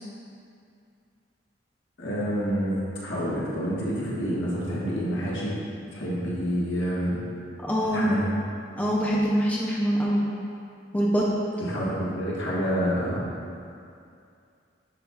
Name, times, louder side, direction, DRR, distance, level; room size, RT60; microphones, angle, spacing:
voice 1, 2.0-5.5 5.9-7.2 7.9-8.3 11.6-13.2, equal, 75° left, -7 dB, 1.5 m, -28 dB
voice 2, 7.6-8.1 8.8-10.3 10.9-11.2, equal, 10° left, -5 dB, 0.5 m, -24 dB
10.0 x 4.5 x 2.4 m, 2.4 s
head